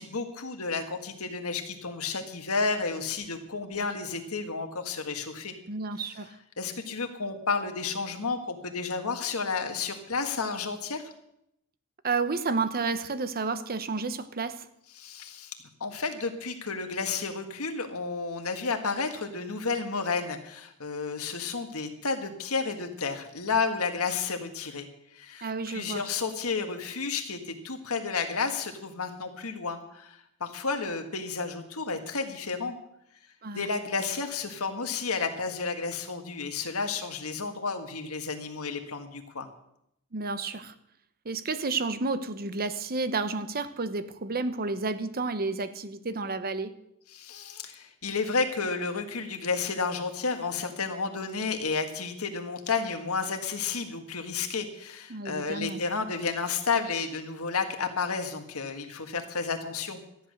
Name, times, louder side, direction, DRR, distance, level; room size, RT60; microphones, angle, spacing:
voice 1, 0.0-5.5 6.6-11.0 15.0-15.5 15.8-24.9 25.1-32.8 33.5-39.5 47.1-60.0, left 4 dB, 70° left, 1.8 m, -31 dB
voice 2, 5.7-6.3 12.0-14.6 25.4-26.0 33.4-33.7 40.1-40.7 41.2-46.7 55.1-55.8, right 3 dB, 45° right, 0.9 m, -31 dB
13.5 x 10.5 x 6.5 m
head